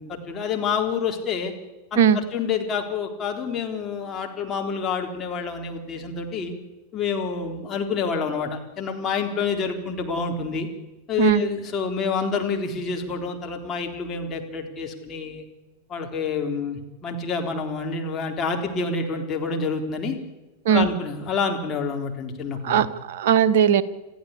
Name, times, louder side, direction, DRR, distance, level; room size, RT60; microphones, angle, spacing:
voice 1, 0.0-1.5 1.9-6.5 6.9-10.7 11.1-15.4 15.9-20.2 20.7-22.9, left 5 dB, 25° left, 2 dB, 4.0 m, -28 dB
voice 2, 22.6-23.8, right 8 dB, 55° right, 13 dB, 1.2 m, -18 dB
28.0 x 15.0 x 8.5 m, 1.1 s
figure-of-eight pair, 90°, 0 cm